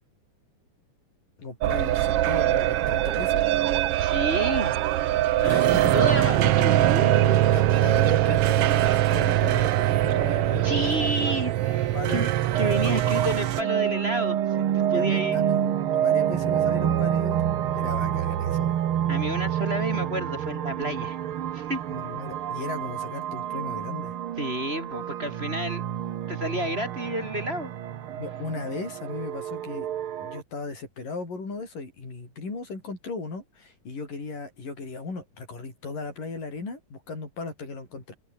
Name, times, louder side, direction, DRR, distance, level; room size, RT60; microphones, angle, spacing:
voice 1, 1.4-3.4 5.4-5.9 7.5-11.2 11.9-12.3 14.8-18.8 21.9-24.1 28.2-29.9 30.2-38.1, left 3 dB, 90° left, 9.7 m, -36 dB
sound 1, 1.6-13.6, right 13 dB, 75° right, 1.3 m, -22 dB
voice 2, 4.0-4.7 5.4-7.5 10.6-15.5 19.1-21.2 21.5-21.8 24.4-25.8 26.3-27.7, right 1 dB, 15° right, 5.4 m, -30 dB
sound 2, 12.5-30.4, right 10 dB, 55° right, 1.6 m, -28 dB
omnidirectional pair, 3.7 m